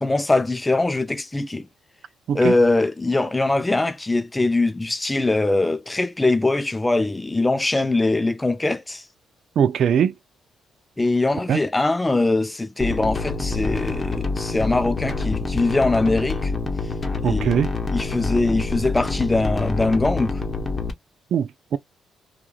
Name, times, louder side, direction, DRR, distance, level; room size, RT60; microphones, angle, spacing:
voice 1, 0.0-1.7 2.3-9.0 11.0-16.5 17.2-17.6 17.9-20.4, left 2 dB, 15° left, 0.5 m, -22 dB
voice 2, 9.6-10.1 11.5-11.6 17.2-17.7 21.3-21.8, right 8 dB, 65° right, 0.3 m, -21 dB
sound 1, 12.8-20.9, left 3 dB, 35° left, 0.8 m, -26 dB
2.9 x 2.4 x 2.3 m
supercardioid pair, 70°, 0 cm